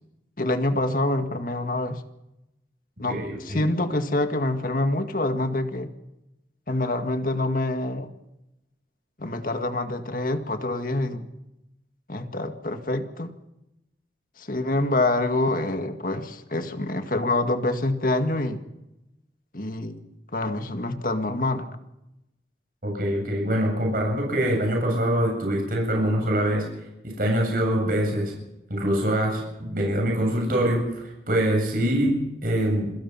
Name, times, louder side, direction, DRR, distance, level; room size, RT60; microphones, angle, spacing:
voice 1, 0.4-2.0 3.0-5.9 6.7-8.1 9.2-11.3 12.1-13.3 14.4-18.6 19.5-20.0 20.3-21.7, left 2 dB, 50° left, 7 dB, 1.9 m, -26 dB
voice 2, 3.1-3.6 22.8-26.7 27.0-28.3 28.7-32.9, right 1 dB, 50° right, 0 dB, 7.9 m, -24 dB
27.0 x 17.0 x 5.7 m, 0.89 s
head